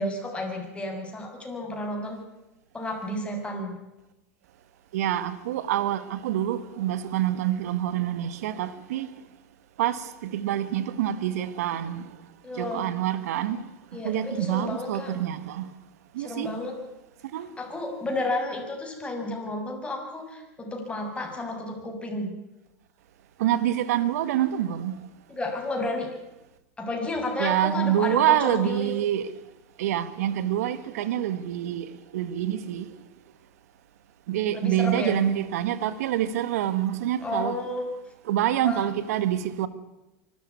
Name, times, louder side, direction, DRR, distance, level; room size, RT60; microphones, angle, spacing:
voice 1, 0.0-2.2 2.7-3.8 12.4-12.9 13.9-15.1 16.2-16.8 17.6-22.3 25.3-26.1 26.8-28.9 34.5-35.2 37.2-37.9 38.6-38.9, left 2 dB, 15° left, 6.9 m, -31 dB
voice 2, 4.9-9.1 9.8-12.1 12.6-13.6 14.0-15.7 16.1-16.5 17.3-17.5 23.4-25.0 27.4-29.3 29.8-32.8 34.3-37.6 38.3-39.7, right 11 dB, 75° right, 1.6 m, -26 dB
24.5 x 13.5 x 9.7 m
hypercardioid pair, 95°, 8 cm